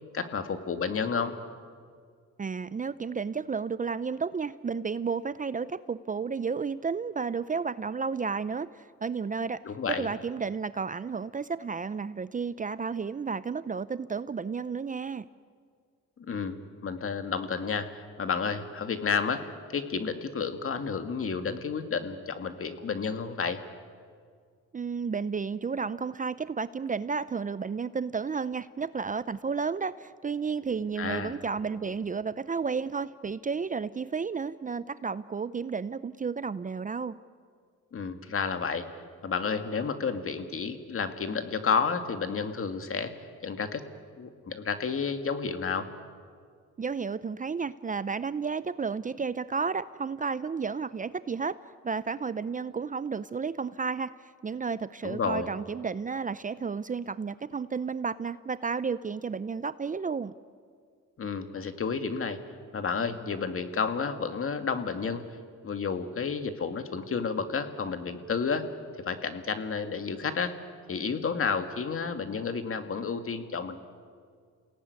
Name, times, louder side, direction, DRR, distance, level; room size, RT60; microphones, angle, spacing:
voice 1, 0.1-1.4 9.6-10.1 16.2-16.6 16.8-23.6 31.0-31.3 37.9-38.9 39.2-43.1 43.4-43.8 44.2-45.9 55.0-55.5 61.2-62.4 62.7-65.2 65.6-68.7 69.1-70.6 70.9-73.8, left 5 dB, 45° left, 8 dB, 2.2 m, -31 dB
voice 2, 2.4-9.6 9.9-15.3 24.7-37.2 46.8-51.6 51.8-54.1 54.4-60.3, right 5 dB, 25° right, 15 dB, 0.6 m, -32 dB
28.5 x 18.0 x 9.7 m, 2.1 s
cardioid pair, 90°, 30 cm